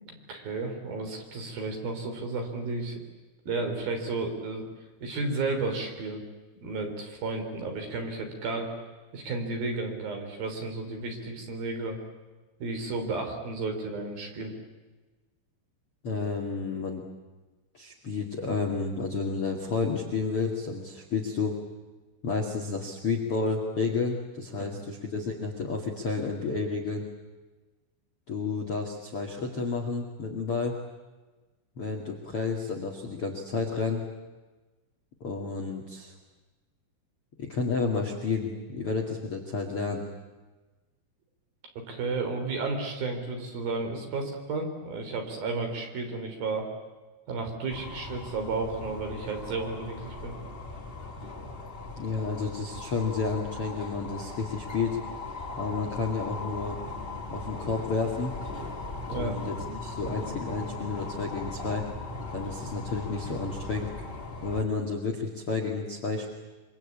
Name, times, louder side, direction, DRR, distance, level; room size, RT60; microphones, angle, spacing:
voice 1, 0.1-3.0 3.5-4.6 5.0-6.2 6.6-8.7 9.1-12.0 12.6-14.5 24.6-24.7 41.9-46.7 47.3-50.3 59.1-59.4, right 3 dB, 50° right, 4 dB, 5.0 m, -32 dB
voice 2, 16.0-17.0 17.7-21.6 22.2-27.1 28.3-30.8 31.8-34.0 35.2-36.1 37.4-40.0 52.0-55.0 55.6-56.8 57.3-58.4 59.1-61.9 62.3-63.9 64.4-66.3, left 4 dB, 40° left, 2 dB, 2.1 m, -31 dB
sound 1, 47.7-64.6, left 3 dB, 90° left, 0.5 m, -39 dB
26.0 x 24.5 x 8.7 m, 1.2 s
omnidirectional pair, 5.8 m